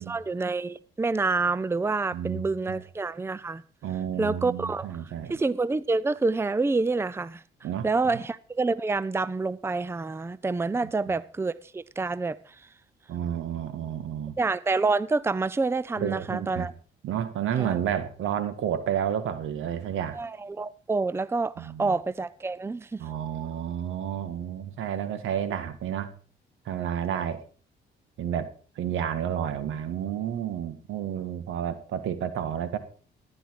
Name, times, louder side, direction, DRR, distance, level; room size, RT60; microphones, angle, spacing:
voice 1, 0.0-3.6 4.2-4.9 5.3-7.4 7.8-12.4 14.4-16.7 17.6-17.7 20.1-23.0, right 3 dB, 10° right, 0.6 m, -27 dB
voice 2, 2.1-2.8 3.8-5.4 7.6-8.1 10.8-11.2 13.1-14.4 16.0-16.7 17.0-20.2 21.6-22.0 23.0-26.1 26.7-27.4 28.2-28.5 28.8-32.8, right 9 dB, 85° right, 1.9 m, -31 dB
14.5 x 11.0 x 4.7 m
cardioid pair, 90°, 20 cm